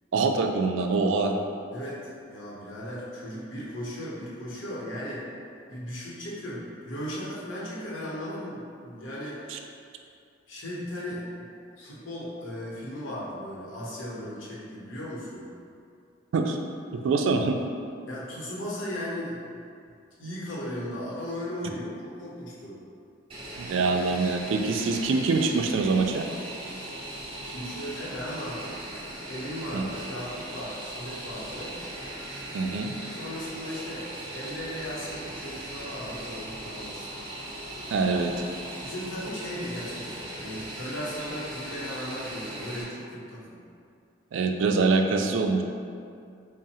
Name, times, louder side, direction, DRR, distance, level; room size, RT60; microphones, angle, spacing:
voice 1, 0.1-1.4 9.5-9.6 16.3-16.6 16.9-17.6 23.6-26.3 29.7-29.9 32.5-32.9 37.9-38.3 44.3-45.6, right 4 dB, 75° right, 4 dB, 0.3 m, -24 dB
voice 2, 1.7-5.3 5.7-9.5 10.5-11.5 11.8-15.5 18.1-19.6 20.2-22.8 27.4-28.8 29.3-31.8 33.1-37.1 38.8-43.6, equal, 80° left, -5 dB, 0.9 m, -37 dB
Fixed-wing aircraft airplane, 23.3-42.8, right 1 dB, 30° right, 0.7 m, -39 dB
3.6 x 2.0 x 4.1 m, 2.4 s
head